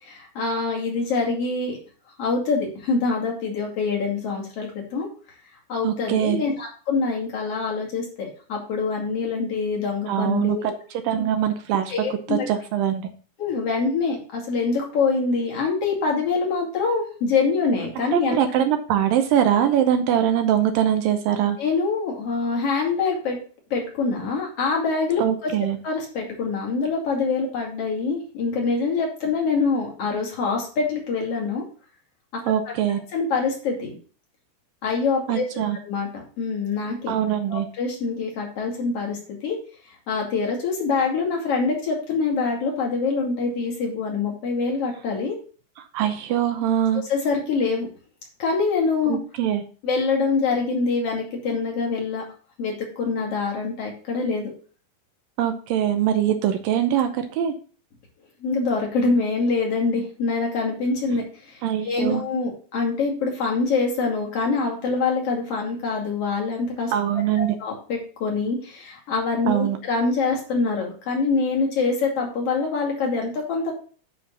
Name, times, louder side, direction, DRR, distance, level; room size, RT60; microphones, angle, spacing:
voice 1, 0.0-1.8 2.2-5.1 5.7-10.7 11.9-12.5 13.4-18.4 21.6-23.4 23.7-25.5 25.8-31.6 33.1-34.0 34.8-37.1 37.5-39.6 40.1-45.4 47.1-47.9 48.4-49.2 49.8-52.2 52.6-54.5 58.4-66.9 67.3-73.7, left 4 dB, 45° left, 0 dB, 2.9 m, -25 dB
voice 2, 5.8-6.4 10.1-10.7 11.0-13.1 18.0-21.6 25.2-25.8 32.5-33.0 35.3-35.8 37.1-37.7 45.9-47.0 49.1-49.6 55.4-57.5 61.6-62.2 66.9-67.6 69.5-69.8, right 10 dB, 75° right, 7 dB, 2.3 m, -22 dB
9.5 x 4.3 x 5.3 m, 0.40 s
omnidirectional pair, 4.4 m